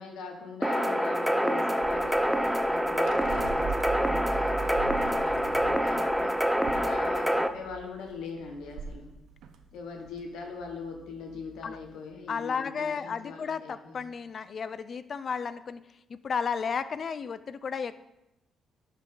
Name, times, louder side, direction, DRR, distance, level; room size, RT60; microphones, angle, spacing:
voice 1, 0.0-6.4 6.7-9.1 9.7-14.1, left 5 dB, 85° left, 2 dB, 1.6 m, -41 dB
sound 1, 0.6-7.5, equal, ahead, 0.6 m, -26 dB
sound 2, 1.8-12.1, right 4 dB, 80° right, 0.7 m, -41 dB
voice 2, 12.3-15.8 16.1-18.0, left 6 dB, 50° left, 14 dB, 0.5 m, -33 dB
11.5 x 5.4 x 3.9 m, 0.90 s
cardioid pair, 90°, 0 cm